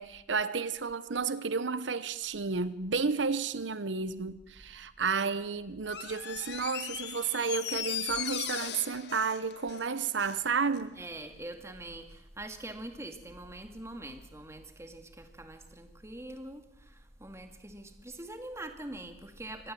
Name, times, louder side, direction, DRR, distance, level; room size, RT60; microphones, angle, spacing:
voice 1, 0.0-11.0, right 5 dB, 85° right, 0.9 m, -32 dB
Door, 5.8-10.4 10.7-10.8, left 10 dB, 65° left, 1.5 m, -38 dB
voice 2, 11.0-19.7, right 1 dB, 15° right, 2.2 m, -44 dB
24.5 x 19.0 x 7.7 m
head